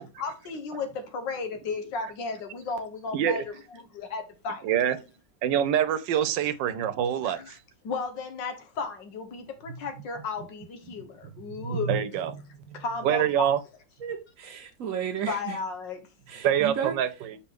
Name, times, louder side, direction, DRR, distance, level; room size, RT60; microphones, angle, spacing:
voice 1, 0.2-4.7 7.2-7.5 7.8-12.1 12.7-13.5 15.3-16.0, left 4 dB, 80° left, 1.9 m, -34 dB
voice 2, 3.1-3.4 4.6-5.0 5.4-7.6 10.9-11.0 11.6-13.6 16.4-17.4, right 9 dB, 85° right, 1.4 m, -26 dB
voice 3, 14.0-15.6 16.3-16.9, right 8 dB, 60° right, 1.0 m, -33 dB
6.9 x 4.7 x 3.6 m
omnidirectional pair, 1.9 m